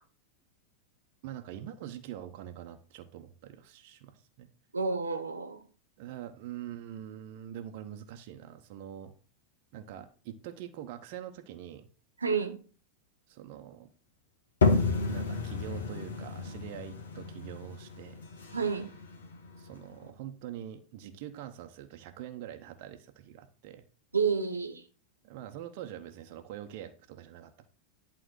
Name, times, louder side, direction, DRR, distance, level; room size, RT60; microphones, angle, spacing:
voice 1, 1.2-4.5 6.0-9.1 9.7-11.9 13.3-13.9 15.1-18.3 19.6-23.8 25.2-27.7, right 11 dB, 45° right, 0.9 m, -44 dB
voice 2, 4.7-5.6 12.2-12.6 18.5-18.9 24.1-24.8, right 5 dB, 75° right, 1.1 m, -29 dB
sound 1, 14.6-20.1, left 4 dB, 65° left, 1.5 m, -31 dB
11.0 x 3.8 x 6.3 m
figure-of-eight pair, 90°, 0 cm